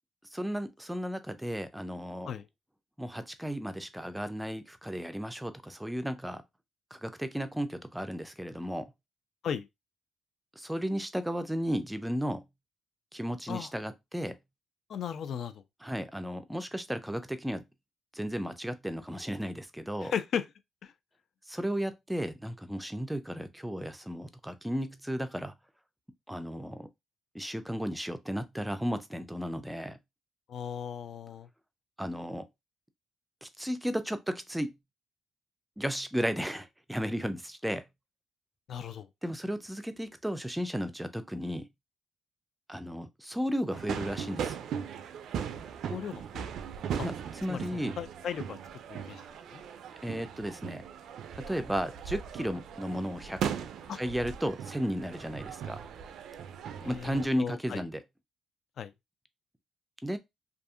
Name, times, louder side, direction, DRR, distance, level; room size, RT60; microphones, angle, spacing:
voice 1, 0.3-2.3 3.0-6.4 6.9-8.9 10.6-12.4 13.1-14.4 15.8-17.6 18.1-20.1 21.5-25.5 26.3-26.9 27.3-30.0 32.0-32.5 33.4-34.7 35.8-37.9 39.2-41.7 42.7-44.6 47.0-47.1 47.4-47.9 50.0-50.8 51.4-53.4 53.9-55.8 56.9-58.0 60.0-60.2, equal, 5° right, 0.4 m, -34 dB
voice 2, 14.9-15.5 20.0-20.5 20.8-20.9 30.5-31.5 38.7-39.1 45.9-46.5 47.0-47.1 47.5-48.6 48.9-49.2 49.5-49.6 53.9-54.0 56.8-57.8 58.8-58.9, left 8 dB, 65° left, 0.3 m, -36 dB
sound 1, 43.7-57.3, right 8 dB, 75° right, 0.3 m, -39 dB
2.6 x 2.4 x 2.4 m
cardioid pair, 90°, 0 cm